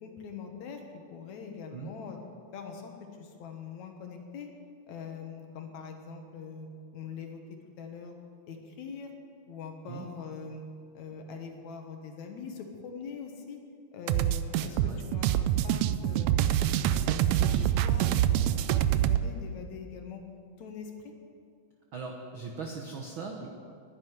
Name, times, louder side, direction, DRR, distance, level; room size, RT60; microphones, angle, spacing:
voice 1, 0.0-2.2 2.5-4.5 4.9-6.7 6.9-7.4 7.8-8.2 8.5-9.1 9.5-10.6 10.9-13.6 13.9-16.3 16.6-18.1 18.4-20.2 20.6-21.1, left 6 dB, 65° left, 3 dB, 2.4 m, -43 dB
sound 1, 14.1-19.2, right 12 dB, 85° right, 1.6 m, -25 dB
voice 2, 14.6-15.1 21.9-23.5, right 4 dB, 65° right, 1 dB, 1.2 m, -40 dB
11.0 x 10.5 x 9.4 m, 2.3 s
omnidirectional pair, 3.7 m